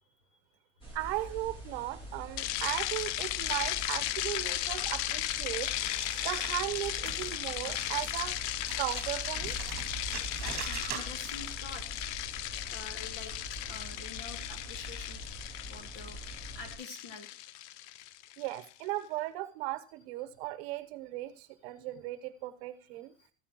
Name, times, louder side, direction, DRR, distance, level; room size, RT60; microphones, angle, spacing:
sound 1, 0.8-16.7, right 1 dB, 15° left, 2.7 m, -44 dB
voice 1, 0.9-5.7 6.2-8.3 8.8-9.5 18.4-23.1, right 16 dB, 55° right, 13 dB, 1.0 m, -37 dB
sound 2, 2.4-18.6, left 14 dB, 70° left, 0.6 m, -36 dB
sound 3, 5.6-11.5, right 8 dB, 25° right, 2.5 m, -44 dB
voice 2, 10.3-12.0 12.7-15.2 15.7-16.2 16.5-17.6 17.9-18.0 23.2-23.3, left 4 dB, 40° left, 6 dB, 2.6 m, -47 dB
14.0 x 9.2 x 3.0 m, 0.38 s
cardioid pair, 180°, 36 cm